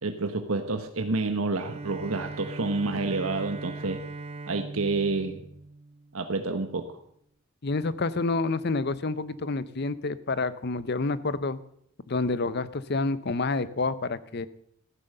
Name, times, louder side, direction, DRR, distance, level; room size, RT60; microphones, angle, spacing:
voice 1, 0.0-4.0 4.5-5.4 6.1-7.0, right 3 dB, 80° right, 7 dB, 1.1 m, -29 dB
Bowed string instrument, 1.5-6.5, right 3 dB, 30° right, 0.5 m, -40 dB
voice 2, 7.6-11.6 12.1-14.5, left 3 dB, 50° left, 16 dB, 0.7 m, -28 dB
14.5 x 9.5 x 6.6 m, 0.71 s
head